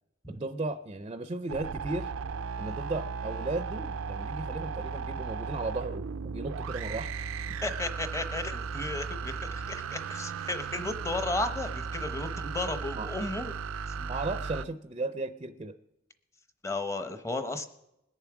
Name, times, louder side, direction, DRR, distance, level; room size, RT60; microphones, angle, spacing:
voice 1, 0.3-2.1 2.6-7.1 13.0-13.1 14.0-15.8, right 2 dB, 25° right, 10 dB, 0.5 m, -35 dB
sound 1, 1.5-14.6, right 5 dB, 85° right, 0.4 m, -36 dB
voice 2, 7.6-13.5 16.6-17.7, left 2 dB, 15° left, 9 dB, 0.8 m, -34 dB
21.0 x 7.0 x 4.8 m, 0.87 s
head